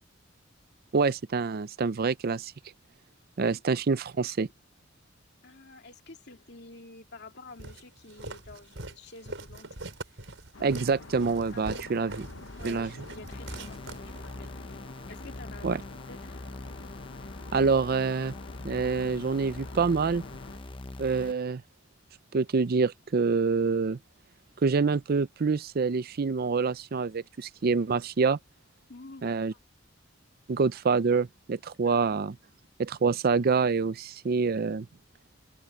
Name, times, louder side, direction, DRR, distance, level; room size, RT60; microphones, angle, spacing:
voice 1, 0.9-2.5 3.4-4.5 10.6-12.3 12.6-12.9 15.6-15.8 17.5-18.3 18.6-20.2 21.0-21.6 22.3-24.0 24.6-28.4 29.2-29.5 30.5-32.4 32.8-34.9, right 4 dB, 50° right, 0.5 m, -26 dB
voice 2, 5.4-9.8 10.1-10.2 11.5-12.2 12.6-14.8 15.1-16.4 28.9-29.6 31.8-32.1, left 2 dB, 60° left, 2.6 m, -49 dB
Walk footsteps, 7.6-14.5, right 2 dB, 80° right, 5.2 m, -42 dB
sound 1, 10.5-20.6, left 3 dB, 80° left, 1.0 m, -46 dB
sound 2, 13.3-21.3, left 2 dB, 25° left, 0.7 m, -43 dB
head